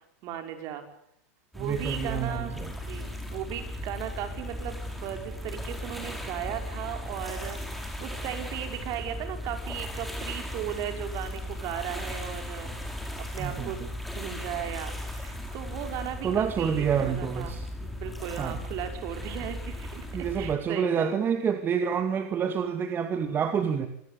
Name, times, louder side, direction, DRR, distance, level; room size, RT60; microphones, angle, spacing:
voice 1, 0.2-0.8 1.5-12.7 13.1-13.8 14.1-21.2, right 10 dB, 50° right, 6 dB, 5.5 m, -37 dB
sound 1, 1.5-20.6, left 1 dB, ahead, 5.5 m, -37 dB
voice 2, 1.6-2.7 13.4-13.7 16.2-17.7 18.4-18.6 20.1-23.9, right 7 dB, 25° right, 7 dB, 2.2 m, -28 dB
26.5 x 19.5 x 8.6 m, 0.74 s
supercardioid pair, 120°, 8 cm